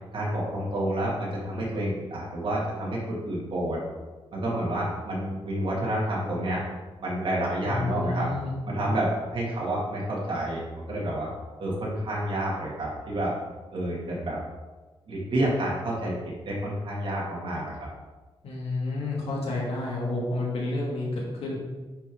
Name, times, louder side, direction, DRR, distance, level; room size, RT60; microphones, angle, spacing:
voice 1, 0.1-3.8 4.3-6.6 7.0-8.3 8.7-11.3 11.6-13.3 13.7-14.4 15.1-16.1 16.4-17.8, right 1 dB, 55° right, -5 dB, 2.5 m, -29 dB
voice 2, 7.6-8.5 18.4-21.6, left 2 dB, 85° left, -4 dB, 2.6 m, -30 dB
10.0 x 5.1 x 3.9 m, 1.2 s
wide cardioid pair, 135°, 10 cm